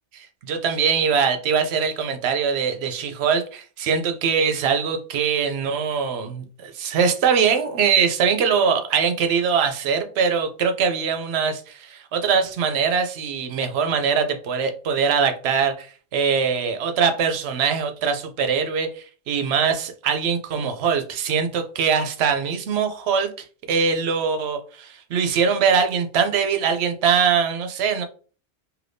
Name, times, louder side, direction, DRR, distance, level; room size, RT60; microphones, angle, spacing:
voice 1, 0.1-28.0, right 6 dB, 70° right, 7 dB, 0.8 m, -22 dB
3.3 x 2.8 x 2.6 m, 0.40 s
omnidirectional pair, 1.2 m